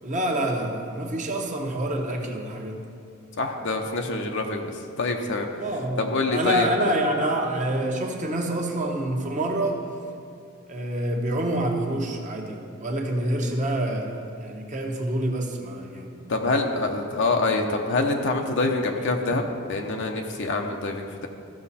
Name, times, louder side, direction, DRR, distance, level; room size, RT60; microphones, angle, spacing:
voice 1, 0.0-2.9 5.6-9.8 10.7-16.3, right 1 dB, 35° right, 1 dB, 1.1 m, -27 dB
voice 2, 3.4-5.5 6.0-6.7 16.3-21.3, left 3 dB, 60° left, 3 dB, 0.8 m, -26 dB
15.0 x 6.3 x 4.2 m, 2.4 s
head